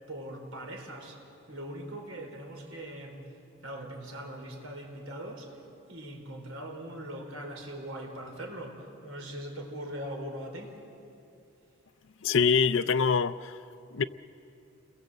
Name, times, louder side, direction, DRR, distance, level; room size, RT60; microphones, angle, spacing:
voice 1, 0.1-1.2 1.5-3.3 3.6-5.6 5.9-10.8, right 1 dB, 75° right, 4.1 m, -41 dB
voice 2, 12.2-13.5 13.9-14.0, left 5 dB, 60° left, 0.5 m, -24 dB
29.0 x 21.5 x 7.8 m
head